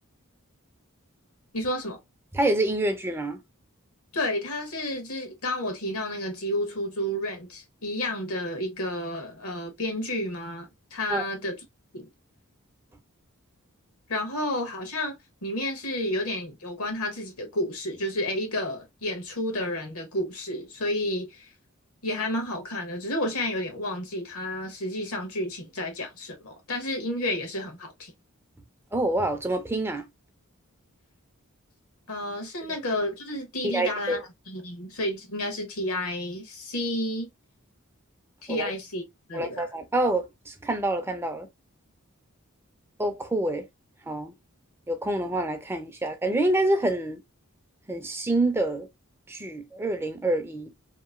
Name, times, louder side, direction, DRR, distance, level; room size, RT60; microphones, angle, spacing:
voice 1, 1.5-2.0 4.1-11.6 11.9-12.1 14.1-21.5 22.0-28.1 32.1-34.2 34.5-37.3 38.4-39.0 39.3-39.7, left 1 dB, 80° left, 1.2 m, -31 dB
voice 2, 2.3-3.4 11.1-11.2 28.9-30.0 33.6-34.2 38.5-38.7 39.3-41.5 43.0-43.7 44.1-44.3 44.9-47.2 47.9-48.9 49.3-50.7, right 1 dB, 10° right, 0.4 m, -27 dB
2.9 x 2.5 x 2.3 m
head